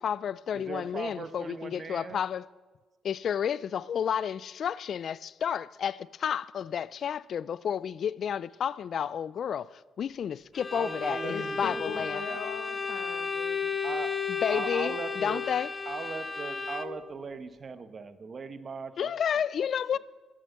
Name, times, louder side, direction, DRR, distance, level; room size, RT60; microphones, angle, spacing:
voice 1, 0.0-2.5 3.0-12.2 14.4-15.7 19.0-20.0, left 8 dB, 60° left, 0.3 m, -31 dB
voice 2, 0.5-2.2 10.7-12.5 13.8-14.2 14.5-15.4 15.9-19.7 19.9-20.0, right 4 dB, 40° right, 1.0 m, -39 dB
Bowed string instrument, 10.5-17.1, left 5 dB, 30° left, 0.8 m, -33 dB
voice 3, 11.2-13.7, left 7 dB, 80° left, 1.2 m, -40 dB
14.0 x 7.6 x 7.9 m
cardioid pair, 90°, 0 cm